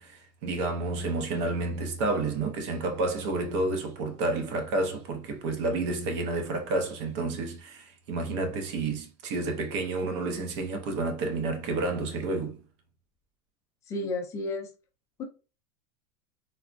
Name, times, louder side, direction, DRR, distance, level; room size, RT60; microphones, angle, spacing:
voice 1, 0.0-12.6, right 2 dB, 45° right, 0.6 m, -30 dB
voice 2, 13.9-14.7 15.2-15.3, left 2 dB, 15° left, 0.4 m, -32 dB
3.3 x 2.0 x 2.4 m
supercardioid pair, 175°, 20 cm